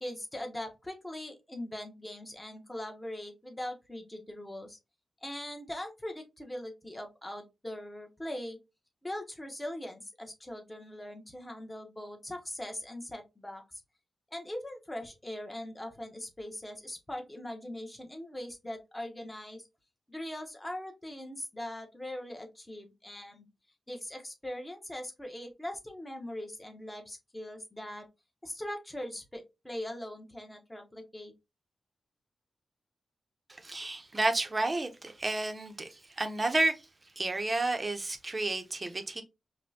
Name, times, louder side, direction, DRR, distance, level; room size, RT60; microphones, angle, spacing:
voice 1, 0.0-4.8 5.2-8.6 9.0-13.8 14.3-19.6 20.1-23.5 23.9-28.1 28.4-31.3, left 1 dB, 10° left, 0.9 m, -41 dB
voice 2, 33.5-36.8 37.2-39.2, right 2 dB, 25° right, 0.7 m, -31 dB
5.2 x 2.2 x 2.7 m
wide cardioid pair, 135°, 0 cm